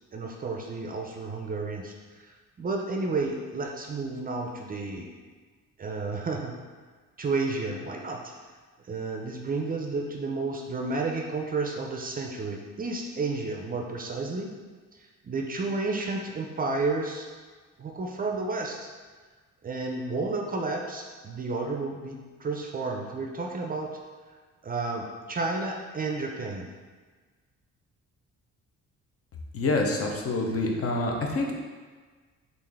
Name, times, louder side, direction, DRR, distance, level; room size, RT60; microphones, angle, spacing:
voice 1, 0.1-1.9 2.2-5.1 5.8-6.6 7.2-8.2 8.8-14.5 15.2-17.3 17.8-18.9 19.6-24.0 24.6-26.7, right 3 dB, 30° right, 1 dB, 0.4 m, -31 dB
voice 2, 29.5-31.6, left 2 dB, 50° left, 1 dB, 0.6 m, -27 dB
3.5 x 2.5 x 3.3 m, 1.4 s
cardioid pair, 90°, 30 cm